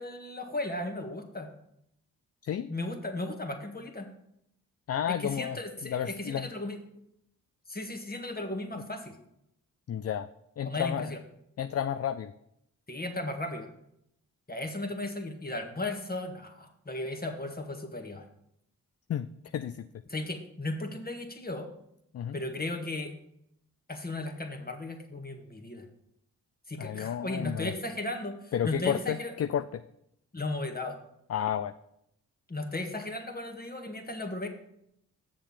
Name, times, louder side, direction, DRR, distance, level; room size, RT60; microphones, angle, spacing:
voice 1, 0.0-1.5 2.7-4.1 5.1-6.8 7.7-9.2 10.6-11.2 12.9-13.7 14.5-18.3 20.1-21.7 22.3-23.2 23.9-25.8 26.7-29.3 30.3-31.0 32.5-34.5, left 2 dB, 25° left, 4 dB, 1.8 m, -36 dB
voice 2, 4.9-6.5 9.9-10.3 10.6-11.1 11.6-12.3 19.1-19.3 19.5-19.9 22.1-22.4 26.8-27.7 28.5-29.8 31.3-31.7, left 9 dB, 40° left, 11 dB, 0.5 m, -31 dB
7.4 x 6.9 x 5.6 m, 0.76 s
supercardioid pair, 40°, 39 cm